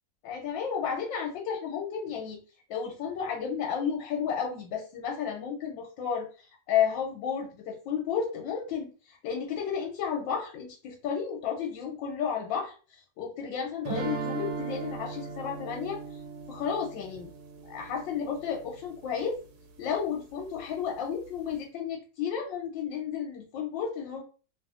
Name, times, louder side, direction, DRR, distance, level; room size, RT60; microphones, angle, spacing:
voice 1, 0.2-2.4 2.7-16.0 16.5-17.3 17.7-19.4 19.8-24.2, left 7 dB, 85° left, 1 dB, 1.3 m, -32 dB
sound 1, 13.9-18.8, right 5 dB, 75° right, 1.3 m, -38 dB
2.9 x 2.7 x 2.4 m, 0.37 s
omnidirectional pair, 2.0 m